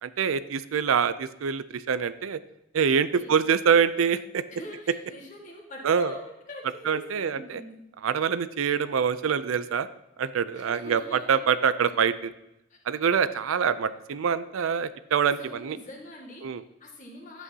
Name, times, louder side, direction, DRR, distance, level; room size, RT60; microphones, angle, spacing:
voice 1, 0.0-2.4 2.7-4.4 5.8-6.1 6.9-7.6 8.0-9.9 10.2-12.3 12.9-15.8 16.4-16.6, right 7 dB, 90° right, 15 dB, 0.4 m, -25 dB
voice 2, 4.5-7.8 10.5-11.2 12.7-12.8 15.4-16.4 16.8-17.4, left 1 dB, 40° left, -2 dB, 1.8 m, -43 dB
11.0 x 8.3 x 2.8 m, 0.87 s
head